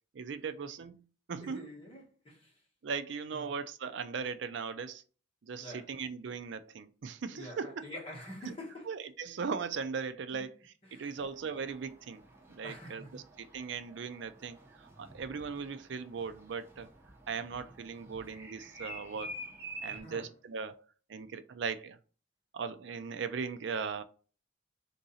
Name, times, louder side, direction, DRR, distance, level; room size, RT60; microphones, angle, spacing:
voice 1, 0.1-1.0 1.3-1.7 2.8-5.0 5.5-7.8 8.4-8.5 8.9-10.5 10.9-12.2 12.5-14.6 15.0-16.9 17.3-19.4 19.8-20.8 21.1-22.0 22.5-24.0, right 5 dB, 60° right, 0.4 m, -38 dB
voice 2, 1.4-2.5 3.3-3.4 5.6-5.9 7.3-8.9 10.3-10.4 10.9-11.2 12.6-13.2 19.9-20.3, left 1 dB, 30° left, 1.4 m, -47 dB
sound 1, 11.2-20.0, right 1 dB, 10° right, 0.7 m, -49 dB
3.7 x 2.7 x 4.1 m
head